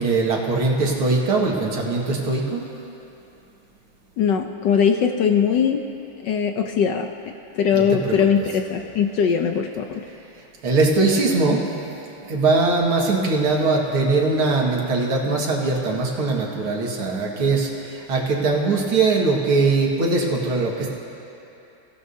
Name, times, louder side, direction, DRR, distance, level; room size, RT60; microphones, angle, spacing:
voice 1, 0.0-2.6 7.7-8.2 10.6-11.6 12.2-20.9, right 3 dB, 75° right, -2 dB, 2.6 m, -21 dB
voice 2, 4.2-5.8 6.2-7.1 7.5-10.1, left 7 dB, 70° left, 5 dB, 1.1 m, -20 dB
29.5 x 16.0 x 2.8 m, 2.9 s
omnidirectional pair, 2.4 m